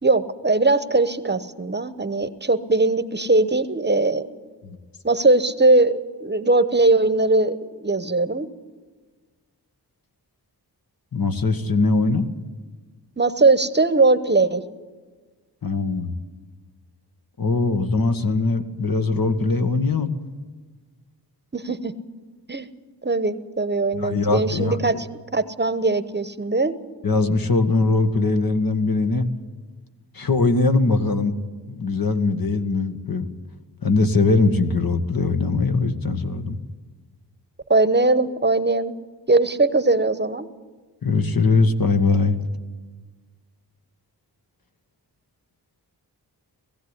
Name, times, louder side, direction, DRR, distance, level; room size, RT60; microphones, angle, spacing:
voice 1, 0.0-4.3 5.0-8.5 13.2-14.6 21.5-21.9 22.5-22.7 23.0-25.1 25.3-26.7 37.7-38.9 39.3-40.5, right 2 dB, 25° right, 12 dB, 1.0 m, -20 dB
voice 2, 11.1-12.3 15.6-16.1 17.4-20.1 24.0-24.9 27.0-29.3 30.1-31.3 31.7-33.3 33.8-36.6 41.0-42.4, left 3 dB, 60° left, 7 dB, 1.7 m, -21 dB
19.0 x 16.0 x 9.9 m, 1.4 s
wide cardioid pair, 85°, 40 cm